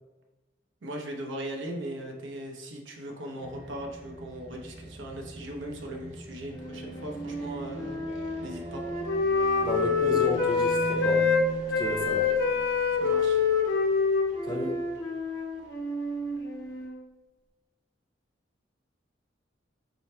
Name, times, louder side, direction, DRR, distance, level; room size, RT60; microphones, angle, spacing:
voice 1, 0.8-8.0 8.4-8.8 13.0-13.4 14.5-14.7, right 1 dB, 80° right, 1 dB, 0.7 m, -39 dB
sound 1, 3.4-16.8, right 1 dB, 40° right, 0.6 m, -42 dB
Wind instrument woodwind instrument, 6.5-11.4 11.7-17.0, left 4 dB, 85° left, 0.9 m, -27 dB
voice 2, 9.6-11.2 11.7-12.3 14.4-14.8, left 2 dB, 20° left, 1 dB, 0.6 m, -32 dB
4.8 x 2.1 x 4.1 m, 1.1 s
head